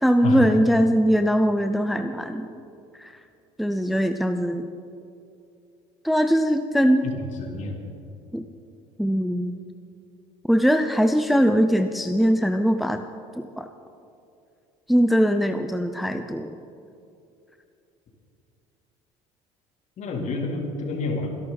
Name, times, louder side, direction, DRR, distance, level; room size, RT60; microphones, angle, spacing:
voice 1, 0.0-2.5 2.9-3.2 3.6-4.7 6.0-7.1 8.3-8.4 9.0-9.6 10.5-13.0 13.4-13.7 14.9-16.5, equal, ahead, 7 dB, 0.7 m, -21 dB
voice 2, 7.4-7.8 20.0-21.3, left 3 dB, 50° left, 1 dB, 3.4 m, -28 dB
25.0 x 11.5 x 4.2 m, 2.7 s
hypercardioid pair, 75°, 16 cm